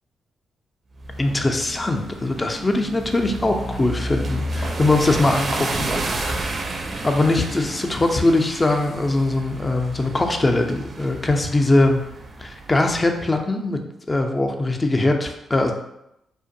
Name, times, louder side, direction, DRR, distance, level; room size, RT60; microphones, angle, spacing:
sound 1, 1.0-13.1, right 2 dB, 45° right, 0.4 m, -31 dB
voice 1, 1.2-6.3 7.0-12.0 12.4-13.8 14.1-15.7, left 2 dB, 30° left, 4 dB, 0.4 m, -21 dB
2.5 x 2.2 x 2.6 m, 0.83 s
hypercardioid pair, 45°, 0 cm